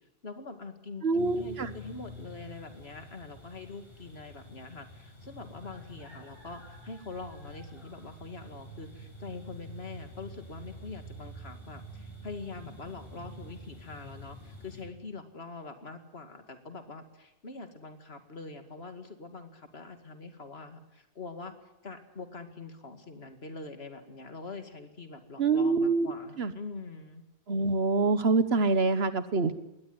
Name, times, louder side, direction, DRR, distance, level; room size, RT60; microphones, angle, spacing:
voice 1, 0.2-21.5 21.8-27.2, left 3 dB, 70° left, 7 dB, 2.5 m, -44 dB
voice 2, 1.0-1.7 25.4-26.1 26.4-26.5 27.5-29.5, right 3 dB, 75° right, 12 dB, 1.5 m, -25 dB
sound 1, 1.2-14.9, right 1 dB, 25° left, 6.9 m, -48 dB
21.0 x 18.0 x 9.6 m, 0.91 s
omnidirectional pair, 1.1 m